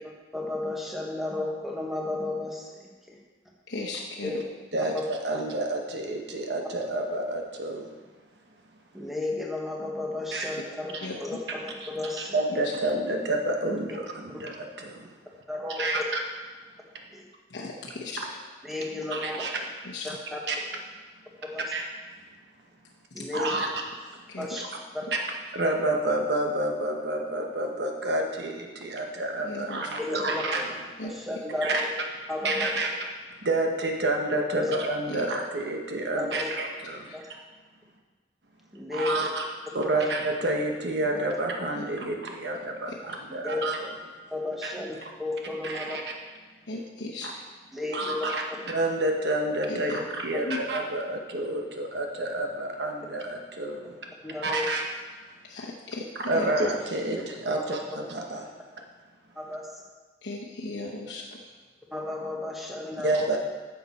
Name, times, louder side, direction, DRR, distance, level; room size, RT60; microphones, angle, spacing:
voice 1, 0.3-3.2 4.2-4.4 4.9-5.0 8.9-10.9 11.2-12.3 15.5-16.0 17.1-17.3 18.6-19.4 20.0-20.4 21.4-21.7 23.1-23.6 24.4-24.6 24.9-25.1 30.0-30.4 31.0-31.7 32.3-32.8 34.6-34.7 36.1-36.6 37.1-37.3 38.7-39.3 39.8-40.1 43.3-43.6 44.3-46.0 47.7-48.3 50.0-50.1 50.3-50.4 54.2-54.7 57.5-57.8 59.4-59.7 61.9-63.3, left 2 dB, ahead, -2 dB, 1.1 m, -33 dB
voice 2, 3.7-4.3 4.8-4.9 11.0-11.1 17.5-18.2 19.8-20.1 24.3-24.5 29.4-29.9 31.0-31.4 35.1-35.3 37.1-37.2 41.8-42.1 42.9-43.0 46.7-47.4 49.7-50.0 50.5-50.6 55.4-56.5 60.2-61.4, left 2 dB, 85° left, -3 dB, 0.9 m, -37 dB
voice 3, 4.7-7.9 10.3-10.5 10.9-11.1 11.8-15.1 15.7-16.0 19.1-19.6 20.5-20.6 21.6-21.8 23.3-23.7 24.6-24.7 25.1-25.2 25.5-30.7 31.6-31.8 32.4-32.9 33.4-37.1 38.9-39.4 39.7-43.9 44.6-44.7 45.0-45.1 45.6-46.0 47.2-47.3 47.9-54.0 54.4-54.8 56.2-58.5 63.0-63.4, right 2 dB, 70° right, 2 dB, 1.1 m, -29 dB
9.8 x 6.7 x 4.2 m, 1.3 s
head